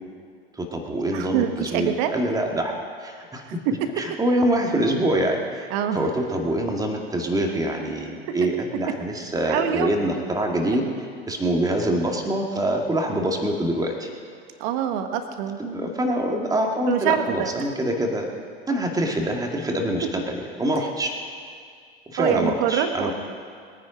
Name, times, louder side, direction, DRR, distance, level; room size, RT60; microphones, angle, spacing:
voice 1, 0.5-2.7 3.0-3.6 4.0-10.9 11.3-14.1 15.6-18.3 18.7-21.1 22.1-23.1, right 1 dB, 10° right, 1 dB, 2.2 m, -25 dB
voice 2, 1.1-2.1 3.4-3.5 5.7-6.1 9.4-9.9 14.6-15.6 16.9-17.5 22.2-23.1, right 9 dB, 50° right, 7 dB, 1.4 m, -25 dB
21.5 x 9.7 x 5.1 m, 2.2 s
figure-of-eight pair, 85°, 30 cm